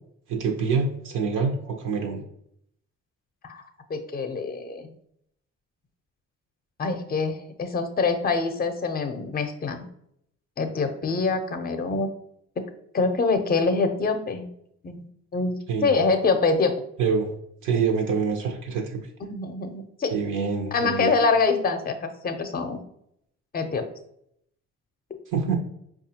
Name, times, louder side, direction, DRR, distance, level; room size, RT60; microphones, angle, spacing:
voice 1, 0.3-2.2 15.7-16.0 17.0-17.3 17.6-19.0 20.1-21.1 25.3-25.6, right 5 dB, 80° right, 2 dB, 0.7 m, -26 dB
voice 2, 3.9-4.9 6.8-9.8 10.6-12.1 12.6-12.7 12.9-14.5 14.8-15.1 15.3-15.5 15.8-16.7 19.2-20.1 20.7-22.8 23.5-23.9, left 4 dB, 30° left, 8 dB, 0.5 m, -25 dB
4.8 x 2.4 x 2.7 m, 0.72 s
cardioid pair, 90°, 30 cm